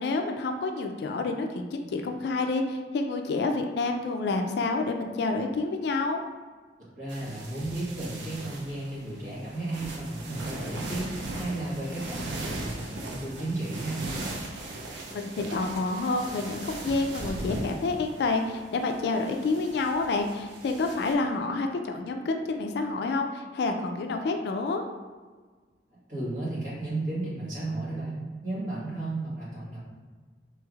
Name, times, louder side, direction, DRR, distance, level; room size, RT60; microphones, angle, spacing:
voice 1, 0.0-6.2 15.1-24.8, left 3 dB, 65° left, 4 dB, 0.3 m, -28 dB
voice 2, 7.0-14.0 26.1-29.8, right 2 dB, 50° right, -9 dB, 1.4 m, -33 dB
sound 1, 7.1-21.1, right 2 dB, 85° right, 0.5 m, -39 dB
3.3 x 3.1 x 2.3 m, 1.4 s
head